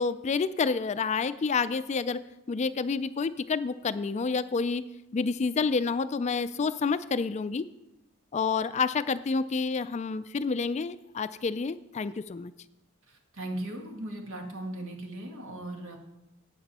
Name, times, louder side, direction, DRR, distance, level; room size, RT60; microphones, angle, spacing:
voice 1, 0.0-2.2 2.5-4.8 5.1-7.6 8.3-12.5, left 4 dB, 35° left, 13 dB, 0.4 m, -29 dB
voice 2, 13.1-16.0, right 1 dB, 75° right, 1 dB, 2.0 m, -38 dB
12.5 x 8.7 x 4.2 m, 0.93 s
head